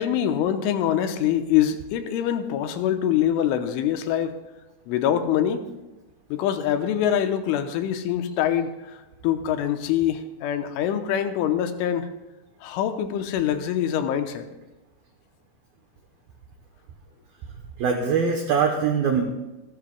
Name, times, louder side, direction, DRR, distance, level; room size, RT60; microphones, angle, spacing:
voice 1, 0.0-4.4 4.9-5.6 6.3-8.7 9.2-12.1 12.6-14.5, left 10 dB, 85° left, 7 dB, 3.2 m, -24 dB
voice 2, 17.8-19.2, right 6 dB, 90° right, 3 dB, 2.1 m, -22 dB
28.0 x 12.5 x 2.3 m, 1.0 s
omnidirectional pair, 5.7 m